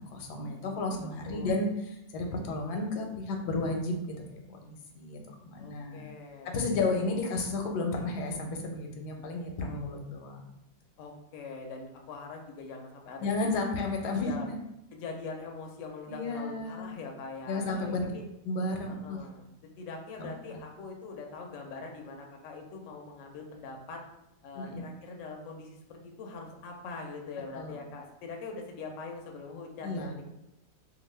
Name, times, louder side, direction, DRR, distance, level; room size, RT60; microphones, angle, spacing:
voice 1, 0.0-3.9 4.3-6.0 6.4-10.5 13.2-14.6 16.1-16.9 17.5-18.0 18.4-19.2 20.2-20.6 24.6-24.9 27.5-27.8 29.8-30.1, left 2 dB, 85° left, 2 dB, 1.1 m, -33 dB
voice 2, 5.5-6.6 11.0-13.5 14.1-14.5 14.9-18.2 18.9-19.5 19.8-24.0 24.4-30.1, left 4 dB, 70° left, 2 dB, 0.8 m, -43 dB
2.8 x 2.3 x 3.2 m, 0.85 s
omnidirectional pair, 1.7 m